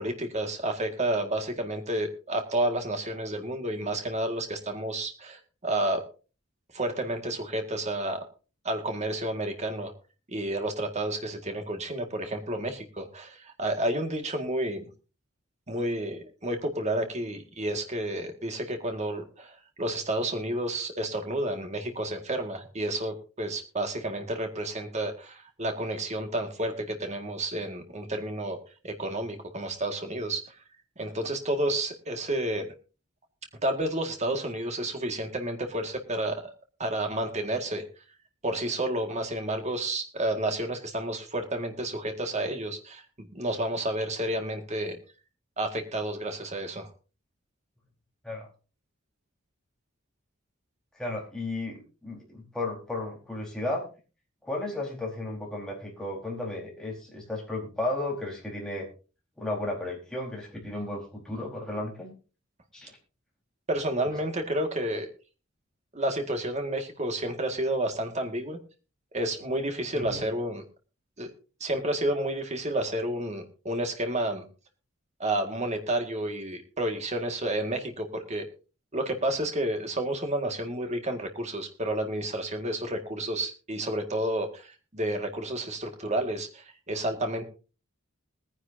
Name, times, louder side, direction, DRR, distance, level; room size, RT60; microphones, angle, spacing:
voice 1, 0.0-6.0 6.7-8.2 8.6-9.9 10.3-14.9 15.7-28.6 28.8-30.4 31.0-32.7 33.6-36.5 36.8-37.8 38.4-45.0 45.6-46.9 63.7-65.1 65.9-68.6 69.1-70.6 71.2-71.3 71.6-74.4 75.2-78.4 78.9-87.4, right 1 dB, 30° right, 5 dB, 1.9 m, -30 dB
voice 2, 51.0-53.9 54.4-58.9 59.4-62.1 62.7-62.9 69.9-70.3, left 2 dB, 5° left, -3 dB, 4.4 m, -34 dB
20.5 x 10.0 x 2.7 m, 0.34 s
head